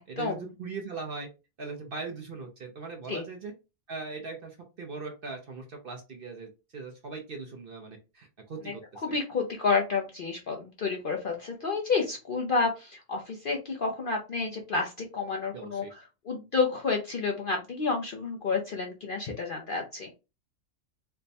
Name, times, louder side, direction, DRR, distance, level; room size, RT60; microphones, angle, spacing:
voice 1, 0.1-1.3 1.6-3.5 3.9-9.0 15.5-15.9, right 4 dB, 50° right, 3 dB, 0.7 m, -40 dB
voice 2, 9.0-15.8 16.3-20.1, left 4 dB, 55° left, 1 dB, 0.6 m, -30 dB
3.4 x 2.2 x 4.0 m, 0.28 s
omnidirectional pair, 1.5 m